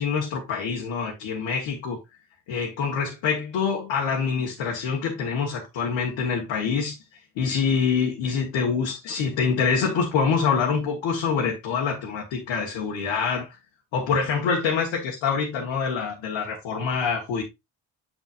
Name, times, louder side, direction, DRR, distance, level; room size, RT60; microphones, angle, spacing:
voice 1, 0.0-2.0 2.5-7.0 7.4-13.6 13.9-17.4, left 6 dB, 80° left, 1.6 m, -25 dB
9.0 x 5.3 x 2.6 m
hypercardioid pair, 45°, 46 cm